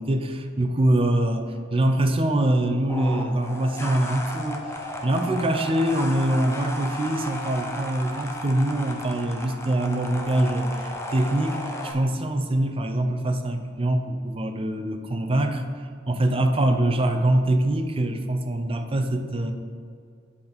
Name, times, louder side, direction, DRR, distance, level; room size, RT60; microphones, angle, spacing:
voice 1, 0.0-4.7 5.0-19.5, right 1 dB, 30° right, 6 dB, 0.5 m, -24 dB
sound 1, 2.9-11.9, left 1 dB, 15° left, 0.7 m, -34 dB
8.3 x 4.1 x 5.1 m, 2.2 s
head